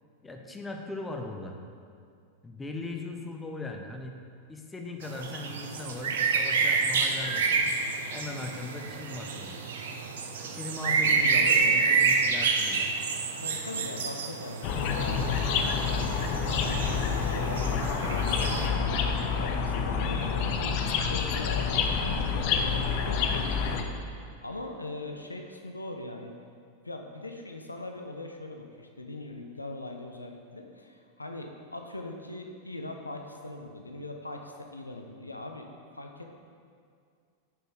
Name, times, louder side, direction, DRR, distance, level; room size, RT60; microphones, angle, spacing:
voice 1, 0.2-1.6 2.4-4.2 4.5-7.7 8.1-9.6 10.4-12.9, left 2 dB, 10° left, 3 dB, 0.7 m, -39 dB
sound 1, 5.0-18.7, right 5 dB, 60° right, 0.6 m, -28 dB
voice 2, 10.8-11.8 13.4-16.2 16.6-26.3 26.8-35.7 35.9-36.4, left 2 dB, 85° left, 3 dB, 0.6 m, -41 dB
sound 2, 14.6-23.8, left 5 dB, 45° left, 0.6 m, -28 dB
7.7 x 5.4 x 4.8 m, 2.2 s
figure-of-eight pair, 90°, 0 cm